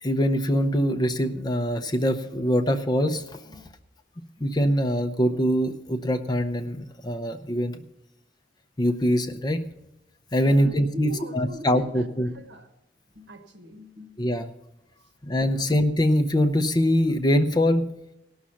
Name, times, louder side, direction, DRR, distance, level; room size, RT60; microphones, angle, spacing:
voice 1, 0.0-3.6 4.4-7.8 8.8-9.6 10.3-12.3 14.2-14.5 15.2-17.9, equal, 25° left, 7 dB, 0.6 m, -23 dB
voice 2, 10.4-12.7 13.1-14.5 15.4-15.8, equal, 80° right, 7 dB, 1.3 m, -44 dB
17.0 x 6.3 x 5.7 m, 0.88 s
head